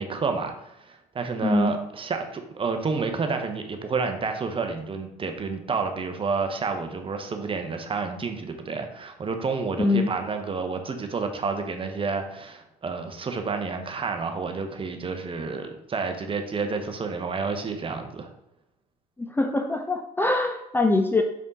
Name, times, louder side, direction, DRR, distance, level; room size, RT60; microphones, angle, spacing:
voice 1, 0.0-18.3, right 4 dB, 25° right, 5 dB, 0.9 m, -30 dB
voice 2, 1.4-1.7 9.8-10.1 19.2-21.2, left 2 dB, 10° left, 3 dB, 0.5 m, -23 dB
5.3 x 4.6 x 4.0 m, 0.83 s
figure-of-eight pair, 55°, 21 cm